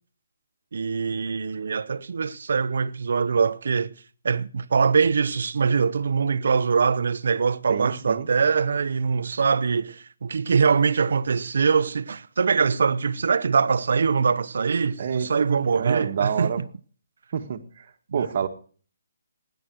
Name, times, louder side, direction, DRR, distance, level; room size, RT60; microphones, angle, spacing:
voice 1, 0.7-3.9 4.2-16.5 18.1-18.3, right 5 dB, 65° right, 0.9 m, -23 dB
voice 2, 7.7-8.3 15.0-16.6 17.3-18.5, right 7 dB, 45° right, 1.8 m, -28 dB
16.5 x 10.5 x 6.3 m
hypercardioid pair, 160°, 0 cm